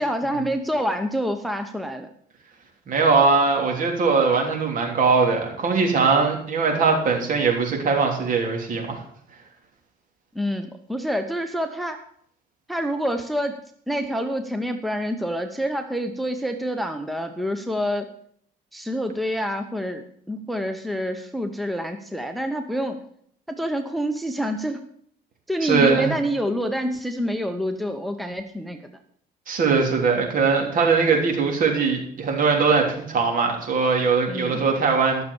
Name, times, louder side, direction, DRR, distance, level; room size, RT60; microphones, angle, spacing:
voice 1, 0.0-2.1 10.3-12.0 12.7-13.5 13.9-18.1 18.7-23.0 23.5-24.8 25.5-28.8 34.3-34.7, equal, ahead, 7 dB, 0.9 m, -27 dB
voice 2, 2.9-9.0 25.6-26.1 29.5-35.2, right 4 dB, 55° right, 2 dB, 3.4 m, -21 dB
13.0 x 6.9 x 7.1 m, 0.64 s
cardioid pair, 110°, 17 cm